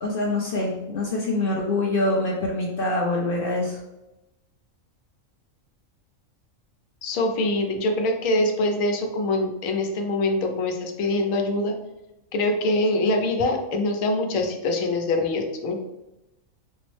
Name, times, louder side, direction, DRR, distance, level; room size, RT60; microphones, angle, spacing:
voice 1, 0.0-3.8, left 2 dB, 55° left, -1 dB, 0.6 m, -25 dB
voice 2, 7.0-11.7 12.3-15.7, left 2 dB, 85° left, 3 dB, 1.0 m, -24 dB
4.4 x 2.0 x 3.0 m, 0.94 s
omnidirectional pair, 1.4 m